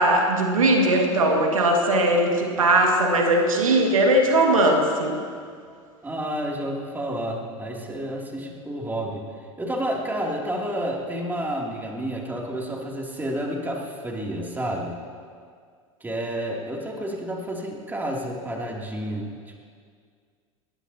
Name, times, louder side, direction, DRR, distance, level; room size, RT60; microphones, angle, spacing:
voice 1, 0.0-5.2, right 1 dB, 80° right, 1 dB, 2.1 m, -19 dB
voice 2, 6.0-9.2 9.6-15.0 16.0-19.3, right 1 dB, 10° right, -2 dB, 3.0 m, -30 dB
20.0 x 20.0 x 3.0 m, 2.1 s
figure-of-eight pair, 85°, 17 cm